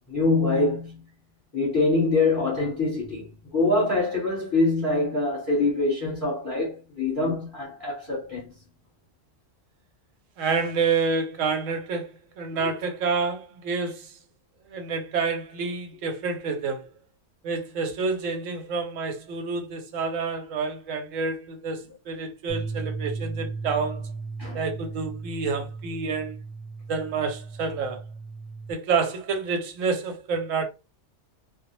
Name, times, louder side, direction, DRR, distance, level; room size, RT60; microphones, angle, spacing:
voice 1, 0.1-1.0 1.5-8.5 12.5-12.7 24.4-24.6, left 2 dB, 20° left, 0.8 m, -24 dB
voice 2, 10.4-14.2 14.7-16.9 17.4-24.1 24.5-26.4 26.9-28.0 28.7-30.6, right 4 dB, 90° right, 1.0 m, -28 dB
sound 1, 22.5-28.7, right 4 dB, 40° right, 0.7 m, -36 dB
2.2 x 2.0 x 3.0 m
omnidirectional pair, 1.3 m